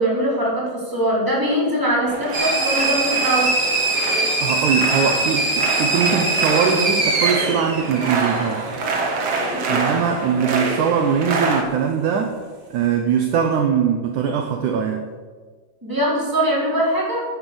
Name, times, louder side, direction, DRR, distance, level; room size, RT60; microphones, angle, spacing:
voice 1, 0.0-3.5 9.5-9.9 15.8-17.2, right 1 dB, 5° right, -6 dB, 3.8 m, -22 dB
sound 1, 2.0-11.6, right 3 dB, 50° right, 2.0 m, -26 dB
sound 2, 2.3-8.7, right 2 dB, 25° right, 2.1 m, -22 dB
voice 2, 4.4-8.7 9.7-12.4 12.7-15.1, right 7 dB, 75° right, 4 dB, 1.9 m, -21 dB
11.0 x 10.0 x 6.9 m, 1.5 s
omnidirectional pair, 4.7 m